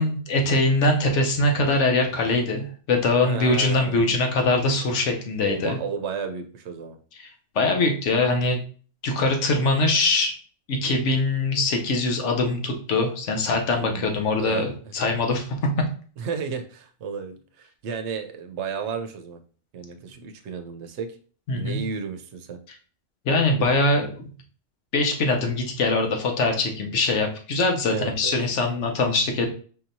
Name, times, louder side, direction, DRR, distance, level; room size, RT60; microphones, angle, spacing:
voice 1, 0.0-5.8 7.2-7.3 7.5-8.6 9.0-10.4 10.7-15.6 21.5-21.8 23.2-24.3 24.9-29.5, left 2 dB, 85° left, 3 dB, 1.1 m, -22 dB
voice 2, 3.2-4.1 5.4-7.0 13.8-15.1 16.2-19.4 19.7-21.2 21.5-22.6 27.9-28.3, right 6 dB, 75° right, 7 dB, 0.9 m, -33 dB
5.3 x 2.9 x 2.6 m, 0.43 s
omnidirectional pair, 1.2 m